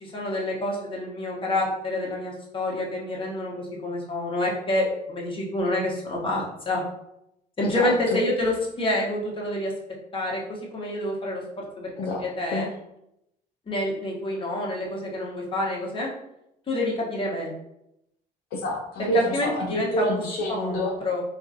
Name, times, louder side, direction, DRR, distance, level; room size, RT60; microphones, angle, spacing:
voice 1, 0.0-6.8 7.6-9.7 10.1-11.9 12.2-12.7 13.7-16.1 16.7-17.5 19.0-20.1 20.6-21.2, left 1 dB, 30° left, -3 dB, 1.1 m, -28 dB
voice 2, 7.6-8.2 12.0-12.2 12.5-12.7 18.5-20.9, equal, 65° left, -2 dB, 0.6 m, -28 dB
3.8 x 2.5 x 2.6 m, 0.81 s
cardioid pair, 110°, 17 cm